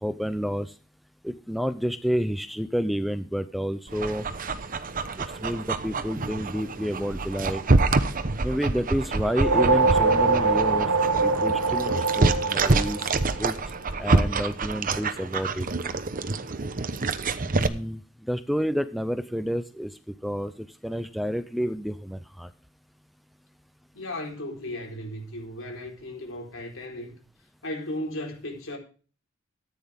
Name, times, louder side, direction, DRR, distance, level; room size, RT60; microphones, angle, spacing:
voice 1, 0.0-0.7 1.2-4.2 5.4-7.6 8.4-10.9 11.2-13.1 13.4-13.5 14.0-15.7 17.5-18.0 18.3-19.9 20.2-22.5, equal, ahead, 0.6 m, -29 dB
Dog, 3.9-17.7, right 3 dB, 40° right, 0.9 m, -27 dB
sound 1, 9.2-13.8, right 3 dB, 70° right, 1.3 m, -23 dB
voice 2, 23.9-27.1 27.6-28.8, left 1 dB, 65° left, 4.2 m, -35 dB
14.0 x 9.5 x 3.5 m
head